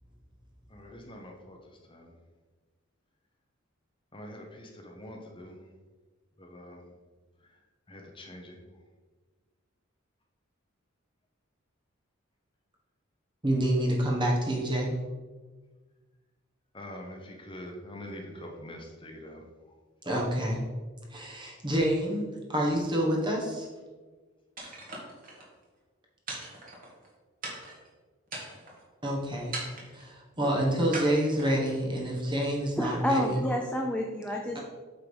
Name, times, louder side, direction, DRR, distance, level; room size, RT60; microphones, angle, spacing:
voice 1, 0.7-2.1 4.1-5.6 6.4-6.9 7.5-7.6 7.9-8.6 16.7-19.4, left 1 dB, 25° left, 1 dB, 0.9 m, -45 dB
voice 2, 13.4-14.9 20.0-20.6 21.1-23.7 29.0-29.5 29.9-33.4, right 1 dB, 25° right, -2 dB, 1.5 m, -28 dB
sound 1, 24.6-25.5 26.3-27.1 27.4-27.9 28.3-28.8 29.5-30.1 30.9-31.8, right 2 dB, 40° right, 1.7 m, -40 dB
voice 3, 32.8-34.6, left 1 dB, 5° left, 1 dB, 0.5 m, -29 dB
8.2 x 3.8 x 5.0 m, 1.4 s
head